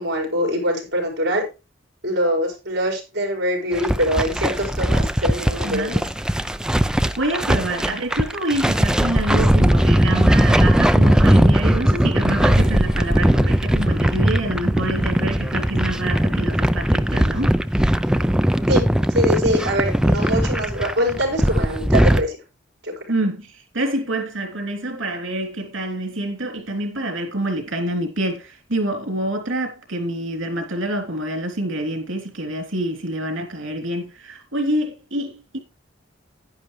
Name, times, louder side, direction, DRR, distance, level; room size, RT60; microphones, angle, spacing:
voice 1, 0.0-1.4 2.0-6.0 18.7-22.4 22.8-22.9, equal, 55° right, 4.8 m, -23 dB
sound 1, 3.7-22.2, equal, 5° right, 0.4 m, -19 dB
voice 2, 5.6-5.9 7.2-17.5 23.1-35.6, right 1 dB, 80° right, 3.1 m, -26 dB
10.5 x 10.0 x 3.2 m
head